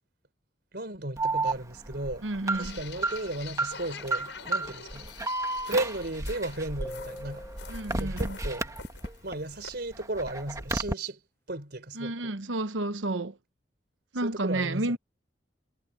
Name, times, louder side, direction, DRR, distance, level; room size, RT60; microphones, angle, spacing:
voice 1, 0.7-2.3 2.5-5.1 5.6-7.5 8.0-8.7 9.2-11.2 11.5-12.3 14.2-15.0, right 2 dB, 60° right, 4.1 m, -35 dB
Alarm, 1.2-9.3 9.7-10.9, right 2 dB, 15° right, 1.3 m, -32 dB
voice 2, 2.2-2.8 7.7-8.4 12.0-13.3 14.1-15.0, right 2 dB, 85° right, 1.1 m, -31 dB
sound 1, 2.6-9.7, left 6 dB, 75° left, 6.0 m, -46 dB
sound 2, 6.8-8.3, equal, 15° left, 0.7 m, -43 dB
head